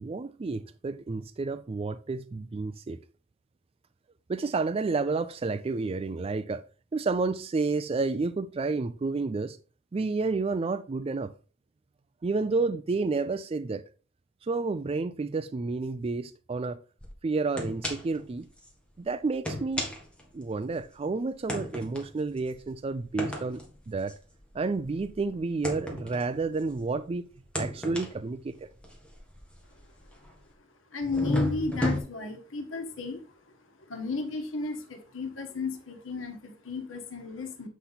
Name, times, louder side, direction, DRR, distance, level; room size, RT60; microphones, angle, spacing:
voice 1, 0.0-3.0 4.3-6.6 6.9-9.6 9.9-11.3 12.2-13.8 14.4-16.8 17.2-18.5 19.0-19.9 20.3-23.6 23.9-24.1 24.5-27.3 27.6-28.7, right 3 dB, 30° right, 0.4 m, -30 dB
sound 1, 17.0-17.1 17.6-18.2 18.6-18.7 19.3-20.9 21.5-27.0 27.4-30.5 31.0-32.0, left 1 dB, 5° left, 2.0 m, -34 dB
voice 2, 30.9-37.7, left 3 dB, 85° left, 1.4 m, -34 dB
8.3 x 5.7 x 4.0 m
head